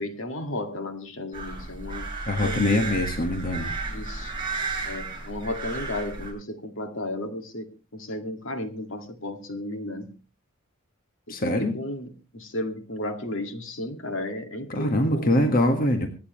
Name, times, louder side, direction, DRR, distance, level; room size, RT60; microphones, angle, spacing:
voice 1, 0.0-2.1 2.4-2.9 3.9-4.4 4.9-10.2 11.3-12.1 12.3-15.3, left 1 dB, 65° left, 2.1 m, -33 dB
sound 1, 1.3-6.3, right 3 dB, 25° right, 8.0 m, -33 dB
voice 2, 2.3-3.7 11.3-11.8 14.7-16.1, left 1 dB, 45° left, 1.6 m, -23 dB
25.0 x 9.5 x 3.1 m
head